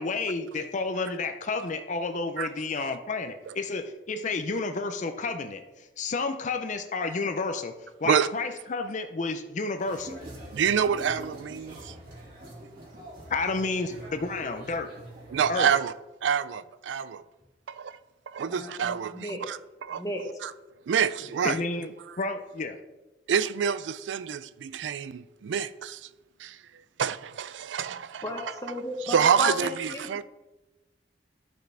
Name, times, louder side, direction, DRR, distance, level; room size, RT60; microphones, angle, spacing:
voice 1, 0.0-10.2 13.3-14.9 15.5-15.7 21.4-22.8, left 3 dB, 40° left, 0.5 m, -31 dB
sound 1, 9.8-15.7, right 1 dB, 55° right, 3.5 m, -45 dB
voice 2, 10.5-11.9 15.3-15.9 16.2-17.2 17.7-18.0 18.3-19.6 19.9-20.0 20.4-20.5 20.9-21.6 23.3-26.1 26.4-26.6 27.0-28.2 29.1-30.2, right 7 dB, 80° right, 0.4 m, -27 dB
voice 3, 18.5-19.4 19.9-20.2 21.3-21.7 28.2-30.2, left 2 dB, 20° left, 1.3 m, -35 dB
12.0 x 6.3 x 3.3 m
head